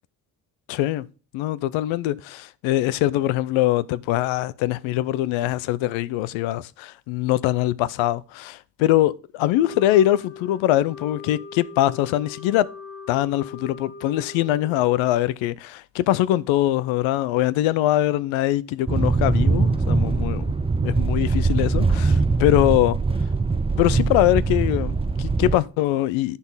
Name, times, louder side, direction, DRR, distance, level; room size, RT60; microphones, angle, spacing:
voice 1, 0.7-1.1 1.3-12.7 13.1-20.5 20.8-23.0 23.8-26.4, left 14 dB, 75° left, 0.7 m, -22 dB
Wind instrument woodwind instrument, 9.5-15.2, left 5 dB, 30° left, 1.1 m, -41 dB
sound 1, 18.9-25.6, right 4 dB, 15° right, 0.5 m, -22 dB
11.5 x 4.1 x 5.5 m
hypercardioid pair, 50°, 47 cm